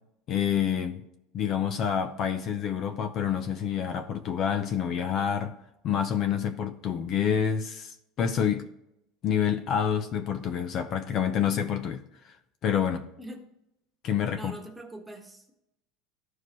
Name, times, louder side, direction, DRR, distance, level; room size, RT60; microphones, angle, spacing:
voice 1, 0.3-1.0 1.3-5.6 5.8-8.7 9.2-12.3 12.6-13.1 14.0-14.5, left 8 dB, 40° left, 0.7 m, -28 dB
voice 2, 14.3-15.5, right 1 dB, 10° right, 1.4 m, -43 dB
14.0 x 4.8 x 3.1 m
cardioid pair, 145°, 0 cm